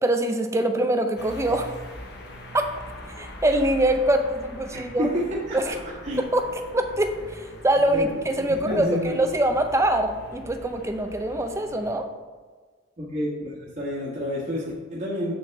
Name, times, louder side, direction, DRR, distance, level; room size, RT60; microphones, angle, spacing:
voice 1, 0.0-1.8 2.5-2.7 3.2-5.1 5.5-5.7 6.2-6.4 6.7-8.1 8.4-12.1, right 1 dB, 15° right, 6 dB, 0.5 m, -24 dB
sound 1, 1.2-12.0, left 1 dB, 55° left, 1.1 m, -42 dB
voice 2, 4.7-6.2 7.9-9.1 13.0-15.4, left 1 dB, 35° right, -6 dB, 1.3 m, -30 dB
7.5 x 7.0 x 3.5 m, 1.4 s
head